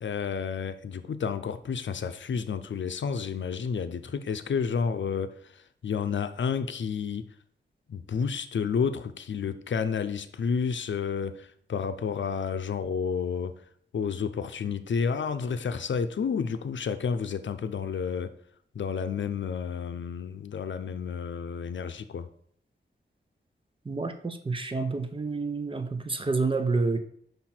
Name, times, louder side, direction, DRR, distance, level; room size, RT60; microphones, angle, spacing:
voice 1, 0.0-7.3 7.9-13.5 13.9-18.3 18.7-22.3, left 6 dB, 75° left, 10 dB, 0.6 m, -30 dB
voice 2, 23.8-27.0, right 3 dB, 25° right, 8 dB, 0.7 m, -29 dB
5.8 x 5.3 x 4.4 m, 0.64 s
wide cardioid pair, 125°, 19 cm